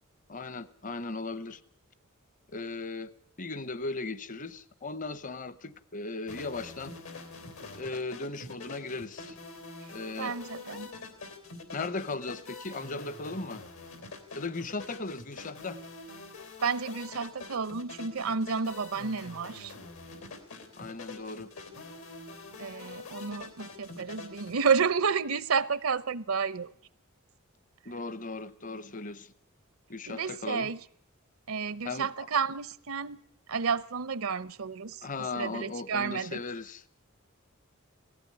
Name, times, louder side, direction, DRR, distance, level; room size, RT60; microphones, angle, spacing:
voice 1, 0.3-1.6 2.5-3.1 3.4-6.9 7.7-9.4 9.9-10.4 11.7-13.6 14.3-15.8 20.8-21.5 27.8-29.3 29.9-30.7 31.8-32.1 35.0-37.0, left 3 dB, 40° left, 0.8 m, -37 dB
sound 1, 6.3-24.9, left 3 dB, 80° left, 3.3 m, -45 dB
voice 2, 10.2-10.9 16.6-19.7 22.6-26.7 30.1-30.8 31.5-33.2 33.5-36.4, right 5 dB, 80° right, 0.7 m, -31 dB
17.5 x 15.5 x 9.6 m
head